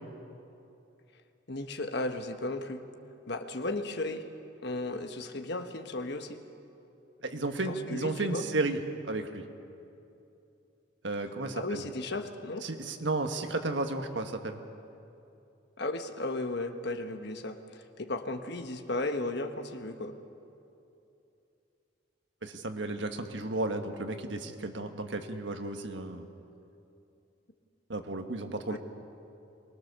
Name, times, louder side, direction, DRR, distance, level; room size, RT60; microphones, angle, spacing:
voice 1, 1.5-2.8 3.3-4.2 4.6-6.4 7.7-8.5 11.5-12.6 15.8-20.2 28.7-28.8, left 2 dB, 60° left, 7 dB, 1.3 m, -35 dB
voice 2, 7.2-9.4 11.0-11.9 12.6-14.6 22.4-26.3 27.9-28.8, right 2 dB, 70° right, 6 dB, 1.5 m, -33 dB
23.5 x 20.0 x 6.8 m, 2.7 s
head